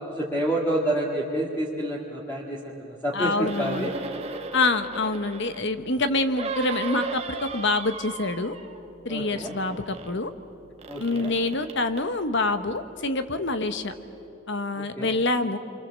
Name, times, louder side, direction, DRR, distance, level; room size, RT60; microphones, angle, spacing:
voice 1, 0.1-3.9 9.1-9.5 10.9-11.3 14.7-15.1, right 1 dB, 10° left, -4 dB, 2.1 m, -28 dB
voice 2, 3.1-3.9 4.5-8.5 9.0-10.3 11.0-13.9 14.5-15.6, left 2 dB, 55° left, 9 dB, 1.2 m, -26 dB
sound 1, 3.4-5.7 6.4-8.9 9.1-10.2 10.8-12.1 12.8-12.9, right 4 dB, 30° right, 1.3 m, -36 dB
28.0 x 25.0 x 7.6 m, 2.9 s
head